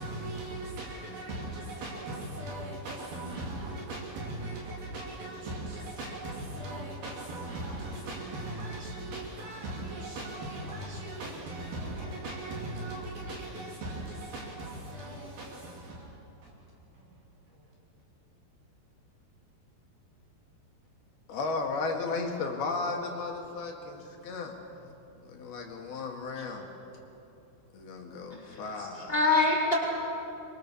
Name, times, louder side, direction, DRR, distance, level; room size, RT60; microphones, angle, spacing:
voice 1, 0.0-16.7 16.9-17.2 17.5-17.7, right 2 dB, 65° right, 4.3 m, -39 dB
voice 2, 21.3-24.6 25.2-26.7 27.7-29.1, left 3 dB, 70° left, 3.7 m, -34 dB
voice 3, 28.3-29.8, left 3 dB, 15° left, 3.7 m, -26 dB
25.0 x 24.0 x 7.1 m
omnidirectional pair, 4.9 m